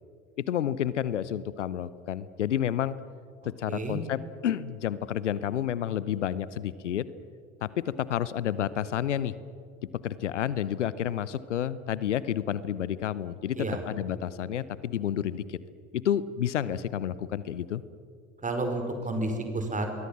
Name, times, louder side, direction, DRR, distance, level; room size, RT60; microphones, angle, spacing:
voice 1, 0.4-3.0 3.4-7.1 7.6-9.3 9.9-15.6 15.9-17.8, left 10 dB, 75° left, 18 dB, 0.8 m, -30 dB
voice 2, 18.4-19.9, right 2 dB, 20° right, 5 dB, 5.2 m, -30 dB
27.0 x 22.5 x 7.4 m, 2.3 s
figure-of-eight pair, 65°, 36 cm